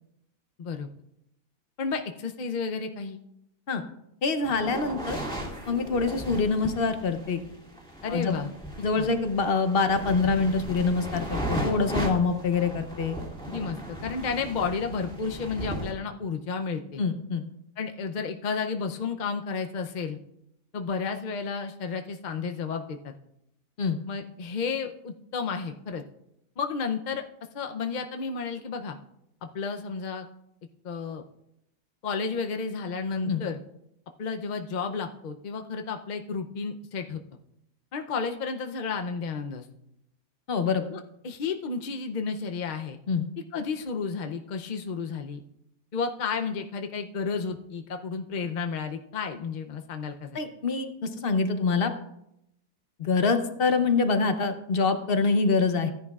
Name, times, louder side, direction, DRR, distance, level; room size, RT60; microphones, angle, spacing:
voice 1, 1.8-3.2 8.0-8.5 9.0-9.1 13.5-17.0 17.8-20.2 20.7-23.1 24.1-26.0 26.6-27.2 27.5-29.0 29.4-30.3 30.8-31.2 32.0-33.6 34.2-37.2 37.9-39.7 40.9-43.0 43.5-45.4 45.9-50.4, left 5 dB, 65° left, 5 dB, 0.4 m, -32 dB
voice 2, 4.2-5.2 5.7-7.4 8.1-8.3 8.8-13.2 17.0-17.4 23.8-24.0 33.2-33.4 40.5-40.9 43.1-43.3 50.3-51.9 53.0-55.9, left 4 dB, 45° left, 8 dB, 0.8 m, -25 dB
sound 1, 4.4-15.9, equal, 5° left, 1.9 m, -36 dB
15.5 x 10.5 x 2.4 m, 0.80 s
omnidirectional pair, 1.6 m